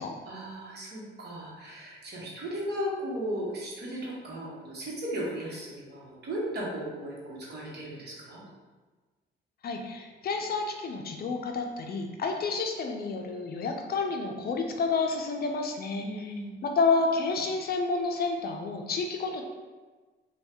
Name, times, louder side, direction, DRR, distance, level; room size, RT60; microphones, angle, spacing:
voice 1, 0.2-8.5 16.0-16.6, equal, 55° right, -5 dB, 1.1 m, -36 dB
voice 2, 9.6-16.0 16.6-19.4, left 4 dB, 50° left, 3 dB, 0.5 m, -29 dB
2.7 x 2.3 x 3.5 m, 1.3 s
cardioid pair, 90°, 20 cm